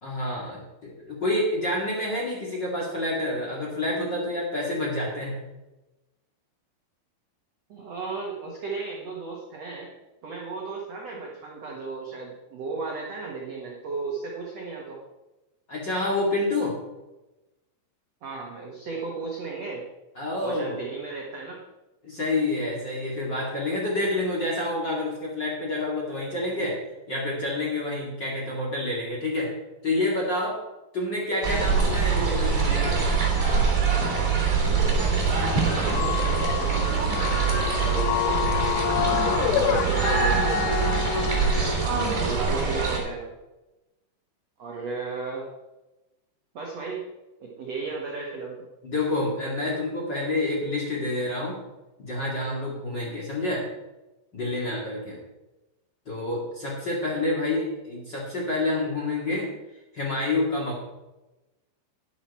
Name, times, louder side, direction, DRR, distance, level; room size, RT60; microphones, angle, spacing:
voice 1, 0.0-5.4 15.7-16.8 20.2-20.8 22.0-26.8 27.1-29.5 29.8-30.6 30.9-33.3 48.8-51.6 52.0-53.6 54.3-55.2 56.1-59.5 59.9-60.8, left 2 dB, 35° left, -3 dB, 1.9 m, -28 dB
voice 2, 7.7-9.9 10.2-15.0 18.2-19.8 20.4-21.6 35.4-38.4 38.9-40.9 41.8-43.3 44.6-45.5 46.5-47.0 47.4-48.6, right 4 dB, 80° right, -2 dB, 1.4 m, -35 dB
sound 1, 31.4-43.0, right 5 dB, 20° right, 2.5 m, -24 dB
sound 2, 35.9-41.9, left 13 dB, 85° left, 2.4 m, -28 dB
11.0 x 11.0 x 4.3 m, 1.0 s
omnidirectional pair, 5.4 m